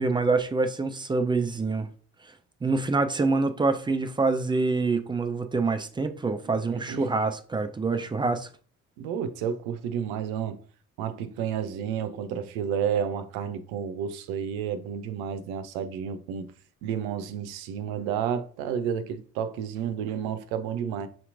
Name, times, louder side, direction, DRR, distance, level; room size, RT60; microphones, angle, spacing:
voice 1, 0.0-1.9 2.6-8.5, right 3 dB, 10° right, 0.3 m, -26 dB
voice 2, 6.7-7.0 9.0-10.6 11.0-16.5 16.8-21.1, right 8 dB, 65° right, 0.6 m, -31 dB
5.9 x 2.8 x 2.5 m
figure-of-eight pair, 45°, 42 cm